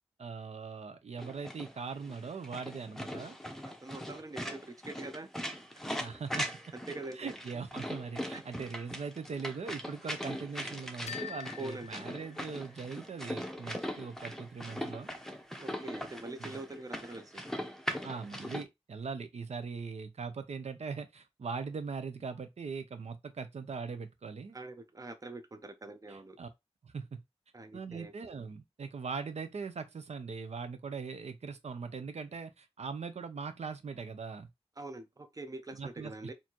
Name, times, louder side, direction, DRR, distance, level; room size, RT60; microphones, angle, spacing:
voice 1, 0.2-3.4 6.0-6.6 7.2-15.1 16.4-16.6 18.0-24.6 26.1-26.5 26.8-27.2 27.7-34.5 35.7-36.1, right 5 dB, 90° right, 0.6 m, -41 dB
sound 1, 1.2-18.6, equal, 5° left, 0.7 m, -40 dB
voice 2, 3.6-5.3 6.7-7.3 8.3-8.4 11.6-11.9 15.6-17.4 24.5-26.4 27.5-28.1 34.8-36.3, right 2 dB, 35° right, 0.6 m, -44 dB
sound 2, 11.1-13.0, left 9 dB, 90° left, 0.4 m, -46 dB
4.3 x 2.7 x 2.9 m
wide cardioid pair, 80°, 11 cm